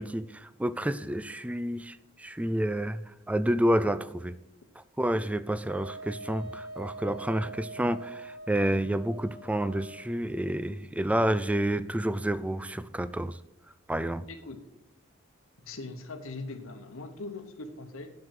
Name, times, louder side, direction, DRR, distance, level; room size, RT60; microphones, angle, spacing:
voice 1, 0.0-4.3 4.8-13.4 13.9-14.3, right 1 dB, 5° right, 16 dB, 0.3 m, -29 dB
Wind instrument woodwind instrument, 5.7-10.1, right 2 dB, 50° right, 1.4 m, -43 dB
voice 2, 14.3-14.6 15.6-18.1, left 3 dB, 85° left, 6 dB, 1.1 m, -41 dB
7.8 x 5.8 x 7.7 m, 0.86 s
head